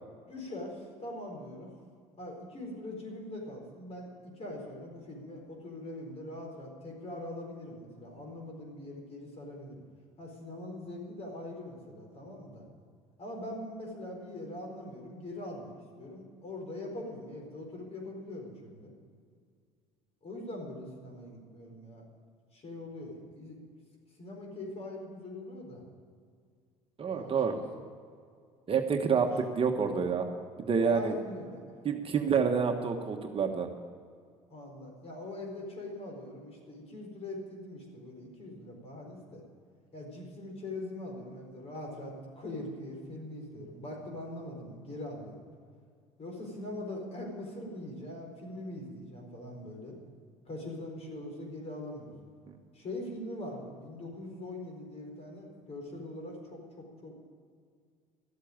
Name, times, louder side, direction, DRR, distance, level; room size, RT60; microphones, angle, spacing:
voice 1, 0.3-1.7 2.2-9.8 10.2-12.7 13.2-18.9 20.2-22.0 22.5-23.6 24.2-25.8 27.1-27.6 30.8-31.6 34.5-39.4 39.9-45.4 46.2-50.0 50.5-52.1 52.7-57.1, left 1 dB, 40° left, 1 dB, 4.6 m, -42 dB
voice 2, 27.0-27.6 28.7-30.3 30.7-31.1 31.8-33.7, right 6 dB, 35° right, 4 dB, 1.3 m, -28 dB
13.0 x 8.2 x 9.0 m, 2.2 s
hypercardioid pair, 80°, 16 cm